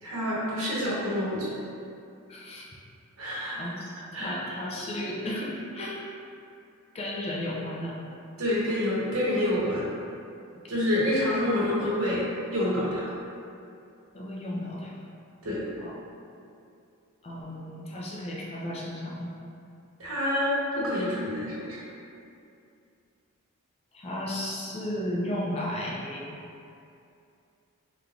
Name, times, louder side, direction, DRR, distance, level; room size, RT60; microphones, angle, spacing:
voice 1, 0.0-1.5 3.2-3.6 4.1-4.3 8.4-9.9 10.7-13.0 15.4-15.6 20.0-21.8, left 1 dB, 70° right, -7 dB, 1.0 m, -27 dB
voice 2, 2.3-2.7 3.6-6.0 6.9-8.0 14.1-14.9 15.8-16.0 17.2-19.3 23.9-26.4, left 1 dB, 30° left, -3 dB, 0.4 m, -34 dB
3.6 x 3.2 x 2.3 m, 2.5 s
head